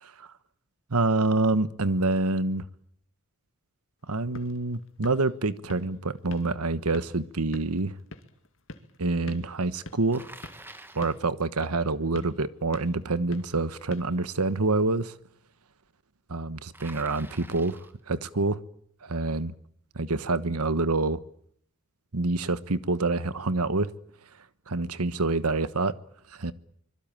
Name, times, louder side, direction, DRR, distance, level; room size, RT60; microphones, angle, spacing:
voice 1, 0.9-2.6 4.1-8.0 9.0-10.3 10.9-15.1 16.3-18.6 19.0-19.5 19.9-21.2 22.1-23.9 24.7-25.9 26.4-26.5, right 3 dB, 90° right, 1.2 m, -27 dB
sound 1, 4.0-14.8, left 2 dB, 60° left, 2.3 m, -48 dB
Bicycle, 10.1-11.2 16.7-18.0, right 2 dB, 10° right, 1.4 m, -47 dB
25.0 x 22.5 x 9.0 m
head